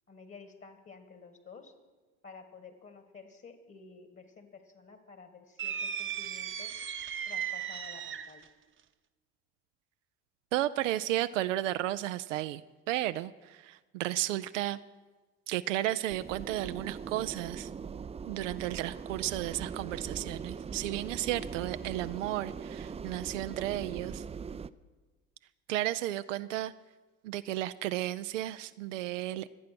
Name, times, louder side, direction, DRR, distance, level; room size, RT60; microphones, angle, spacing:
voice 1, 0.1-1.7 2.2-6.7 7.3-8.5, left 4 dB, 35° left, 9 dB, 1.8 m, -52 dB
sound 1, 5.6-8.5, right 8 dB, 35° right, 0.8 m, -36 dB
voice 2, 10.5-12.6 12.9-14.8 15.5-17.7 18.2-24.2 25.7-26.7 27.2-29.5, right 14 dB, 85° right, 11 dB, 0.5 m, -33 dB
sound 2, 16.1-24.7, right 6 dB, 20° right, 0.4 m, -41 dB
24.5 x 8.5 x 6.0 m, 1.3 s
hypercardioid pair, 65°, 36 cm